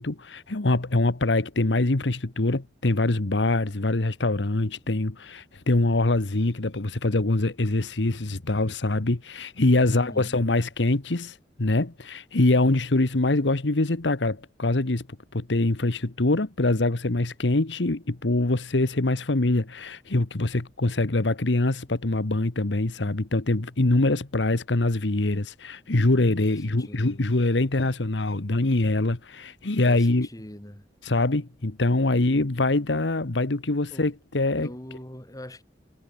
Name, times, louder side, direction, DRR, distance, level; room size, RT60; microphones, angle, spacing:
voice 1, 0.0-15.1 15.3-30.3 31.0-34.7, left 2 dB, 85° left, 1.3 m, -24 dB
voice 2, 9.9-10.4 26.5-27.2 29.9-30.9 33.9-34.1 34.6-35.6, equal, 20° left, 5.6 m, -42 dB
head